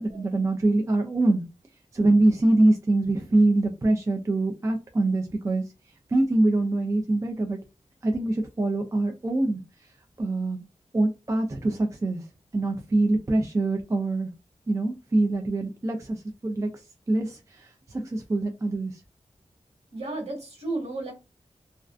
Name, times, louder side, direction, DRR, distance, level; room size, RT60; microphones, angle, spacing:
voice 1, 0.0-1.4 1.9-5.7 6.1-7.6 8.0-9.9 10.2-10.6 10.9-12.3 12.5-14.3 14.7-19.0, right 2 dB, 25° right, 3 dB, 0.3 m, -24 dB
voice 2, 19.9-21.1, right 2 dB, 55° right, -1 dB, 1.4 m, -33 dB
2.3 x 2.2 x 2.4 m, 0.28 s
wide cardioid pair, 85°, 13 cm